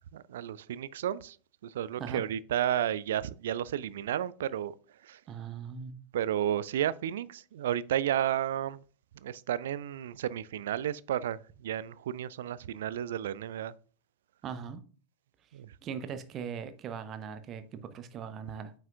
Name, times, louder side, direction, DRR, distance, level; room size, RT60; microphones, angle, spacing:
voice 1, 0.1-1.4 1.6-4.7 5.0-5.2 6.1-8.8 9.2-13.7 15.5-15.7, right 10 dB, 60° right, 0.3 m, -32 dB
voice 2, 5.3-6.0 14.4-14.8 15.8-18.7, right 7 dB, 30° right, 0.8 m, -40 dB
9.1 x 5.6 x 2.4 m
figure-of-eight pair, 90°, 0 cm